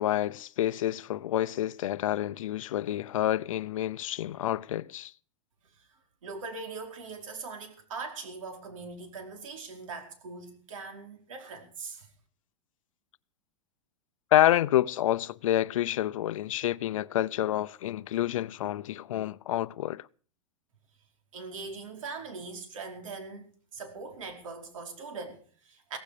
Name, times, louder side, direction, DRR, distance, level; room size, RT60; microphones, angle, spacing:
voice 1, 0.0-5.1 14.3-20.1, left 13 dB, 85° left, 0.7 m, -28 dB
voice 2, 6.2-12.1 21.3-26.0, right 4 dB, 85° right, 4.9 m, -41 dB
17.0 x 15.0 x 5.0 m
supercardioid pair, 170°, 16 cm